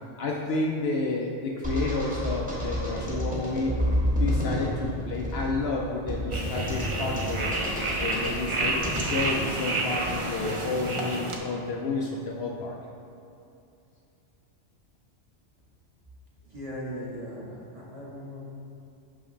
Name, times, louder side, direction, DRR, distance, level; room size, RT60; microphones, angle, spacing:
voice 1, 0.2-3.7 4.2-7.6 8.0-12.7, left 3 dB, 65° left, -1 dB, 0.7 m, -30 dB
sound 1, 1.6-9.3, equal, 5° right, 1.1 m, -30 dB
sound 2, 6.3-11.4, right 2 dB, 50° right, 0.4 m, -30 dB
voice 2, 16.5-18.4, equal, 30° right, -7 dB, 1.1 m, -38 dB
6.1 x 5.6 x 3.2 m, 2.7 s
omnidirectional pair, 1.3 m